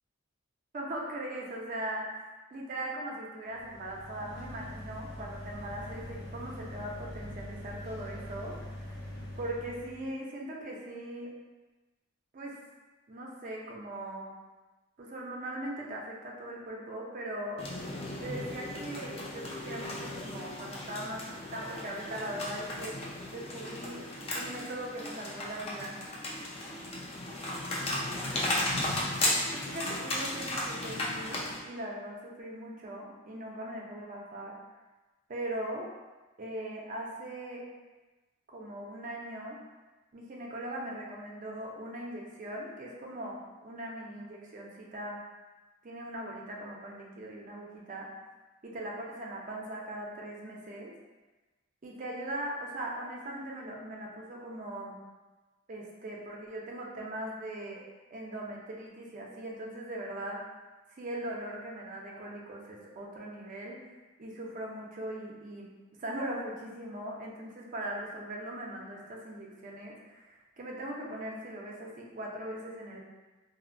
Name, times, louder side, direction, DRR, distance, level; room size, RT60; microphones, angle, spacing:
voice 1, 0.7-9.0 9.4-11.3 12.3-12.6 13.1-14.3 15.0-17.6 18.2-23.0 23.3-24.0 24.3-26.0 29.5-34.5 35.3-35.9 36.4-37.6 38.5-39.6 40.1-45.2 45.8-48.1 48.6-50.9 51.8-55.0 55.7-57.8 58.1-60.4 60.9-63.8 64.2-65.7 66.0-73.0, right 1 dB, 40° right, -2 dB, 0.4 m, -40 dB
sound 1, 3.5-10.1, left 1 dB, 80° left, 1.0 m, -43 dB
sound 2, 17.6-31.6, left 1 dB, 30° left, 0.3 m, -35 dB
2.9 x 2.0 x 2.5 m, 1.2 s
head